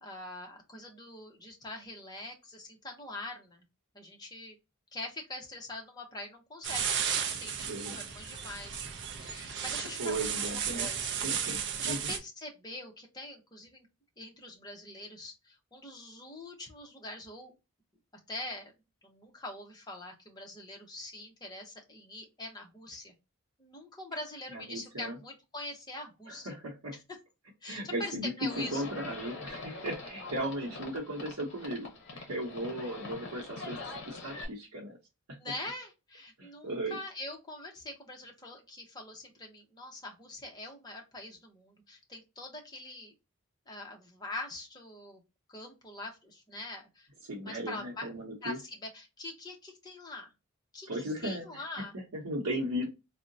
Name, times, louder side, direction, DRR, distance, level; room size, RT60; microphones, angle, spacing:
voice 1, 0.0-3.6 3.9-4.6 4.9-10.4 10.7-11.2 11.8-13.9 14.2-17.5 18.3-18.7 19.0-23.1 23.6-26.5 27.6-28.8 35.4-43.1 43.7-45.2 45.5-47.1 47.4-48.1 48.4-50.3 50.7-50.9 51.2-51.9, left 2 dB, 20° left, 1 dB, 0.7 m, -43 dB
sound 1, 6.6-12.2, right 7 dB, 50° right, 0.4 m, -34 dB
voice 2, 7.7-8.0 10.0-10.9 11.2-12.1 24.5-25.2 26.3-27.0 27.7-33.8 34.1-35.0 35.3-35.4 36.4-37.0 47.2-48.6 50.9-51.6 51.9-52.9, right 1 dB, 90° right, -3 dB, 0.8 m, -36 dB
Livestock farm animals working animals, 28.5-34.4, left 3 dB, 55° left, 0.8 m, -44 dB
3.6 x 2.1 x 2.6 m, 0.25 s
head